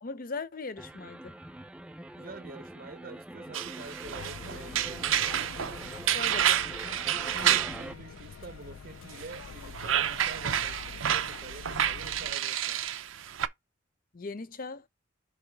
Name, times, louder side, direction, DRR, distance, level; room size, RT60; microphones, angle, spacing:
voice 1, 0.0-1.3 6.1-6.6 14.1-14.8, left 4 dB, 45° left, 0.6 m, -39 dB
sound 1, 0.8-7.9, right 1 dB, 5° right, 0.4 m, -44 dB
voice 2, 2.2-5.1 7.3-12.8, right 3 dB, 45° right, 0.7 m, -47 dB
sound 2, 3.5-7.8 9.1-13.5, right 10 dB, 90° right, 0.6 m, -29 dB
sound 3, 4.0-12.4, left 6 dB, 85° left, 0.4 m, -46 dB
5.5 x 4.7 x 4.0 m
head